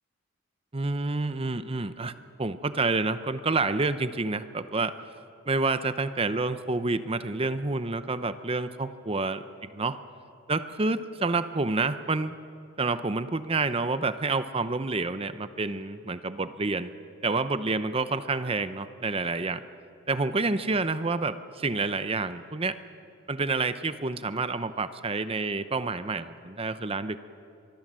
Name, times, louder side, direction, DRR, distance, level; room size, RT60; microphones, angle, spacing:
voice 1, 0.7-2.1 2.4-4.9 5.5-10.0 10.5-12.4 12.8-16.9 17.2-19.6 20.1-22.8 23.3-27.2, right 3 dB, 30° right, 12 dB, 0.7 m, -28 dB
23.5 x 23.5 x 7.6 m, 2.5 s
head